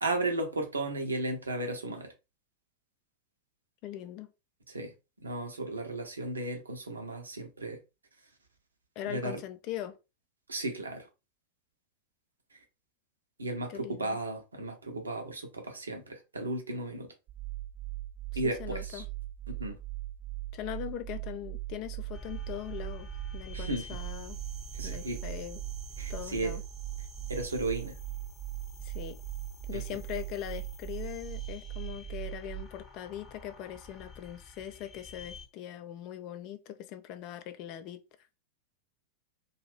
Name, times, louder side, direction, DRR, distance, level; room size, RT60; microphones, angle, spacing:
voice 1, 0.0-2.1 4.7-4.9 5.2-7.8 9.1-9.4 10.5-11.1 13.4-17.1 18.3-19.0 19.5-19.8 23.5-23.9 24.7-25.2 26.0-26.6 27.3-28.0 29.7-30.0, right 2 dB, 75° right, 0.7 m, -34 dB
voice 2, 3.8-4.3 9.0-10.0 13.7-14.2 18.3-19.0 20.5-24.4 24.8-25.6 26.1-26.6 28.8-29.2 29.7-38.0, left 11 dB, 40° left, 0.4 m, -41 dB
sound 1, 17.3-32.6, right 17 dB, 35° right, 0.7 m, -40 dB
sound 2, 22.1-35.5, left 2 dB, 15° left, 0.8 m, -49 dB
2.6 x 2.3 x 3.2 m
figure-of-eight pair, 90°, 0 cm